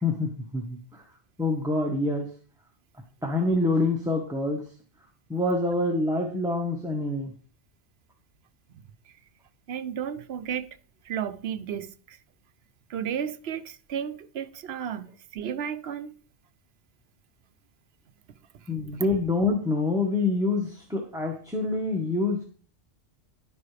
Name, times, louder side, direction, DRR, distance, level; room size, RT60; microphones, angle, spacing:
voice 1, 0.0-1.0 1.4-2.3 3.2-4.6 5.3-7.3 18.7-22.4, left 2 dB, 5° right, 1.3 m, -26 dB
voice 2, 9.7-10.8 11.0-12.2 12.9-16.1, right 8 dB, 70° right, 0.8 m, -33 dB
11.0 x 9.4 x 3.3 m
omnidirectional pair, 1.2 m